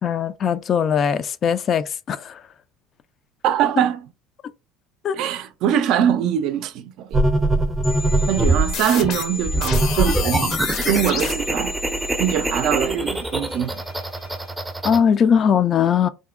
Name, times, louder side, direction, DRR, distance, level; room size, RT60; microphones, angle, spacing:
voice 1, 0.0-2.4 5.0-5.2 14.8-16.1, left 7 dB, 45° left, 0.3 m, -20 dB
voice 2, 3.4-4.1 5.1-7.2 8.3-10.5 10.9-11.7 12.2-13.8, right 9 dB, 65° right, 0.4 m, -22 dB
sound 1, 7.1-8.7 9.4-15.0, right 2 dB, 10° right, 0.5 m, -22 dB
sound 2, 7.8-12.8, left 5 dB, 60° left, 0.7 m, -30 dB
sound 3, 7.9-14.5, left 1 dB, 80° left, 1.7 m, -46 dB
3.6 x 2.0 x 2.4 m
supercardioid pair, 90°, 0 cm